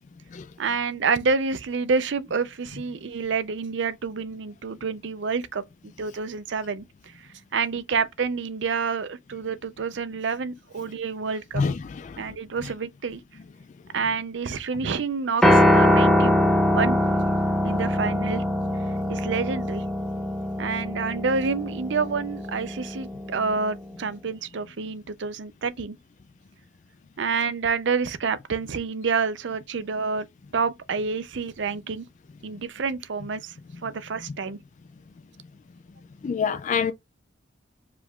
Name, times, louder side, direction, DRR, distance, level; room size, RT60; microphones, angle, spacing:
voice 1, 0.6-5.6 6.0-6.8 7.2-7.3 7.5-11.6 12.2-13.2 13.9-16.4 16.7-17.0 17.6-18.4 19.1-19.9 20.6-26.0 27.2-30.3 30.5-32.0 32.4-33.5 33.8-34.6, right 5 dB, 65° right, 0.5 m, -28 dB
voice 2, 11.5-12.2 36.2-36.9, left 6 dB, 40° left, 0.3 m, -26 dB
Piano, 15.4-23.7, left 1 dB, ahead, 0.7 m, -23 dB
4.9 x 2.3 x 3.6 m
head